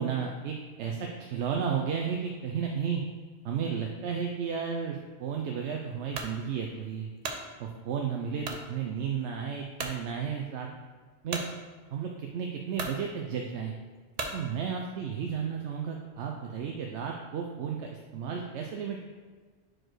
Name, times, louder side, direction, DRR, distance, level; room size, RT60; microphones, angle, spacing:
voice 1, 0.0-3.0 3.4-7.1 7.6-10.7 11.2-11.4 11.9-13.7 14.3-19.0, right 7 dB, 85° right, 1 dB, 0.9 m, -33 dB
sound 1, 6.1-6.4 6.9-7.4 8.4-8.7 9.2-9.3 9.8-10.0 11.3-11.5 12.3-12.4 12.7-13.0 14.1-14.4, right 3 dB, 45° right, 0.6 m, -35 dB
4.7 x 4.4 x 4.5 m, 1.4 s
omnidirectional pair, 1.1 m